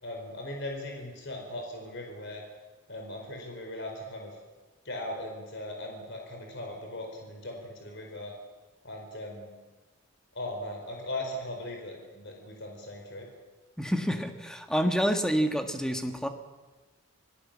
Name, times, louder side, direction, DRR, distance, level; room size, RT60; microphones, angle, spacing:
voice 1, 0.0-2.4 2.9-4.3 4.8-8.3 8.8-9.5 10.3-13.3, left 1 dB, 55° left, 2 dB, 4.5 m, -39 dB
voice 2, 13.8-16.3, equal, 5° left, 6 dB, 1.5 m, -28 dB
26.5 x 18.0 x 7.4 m, 1.2 s
head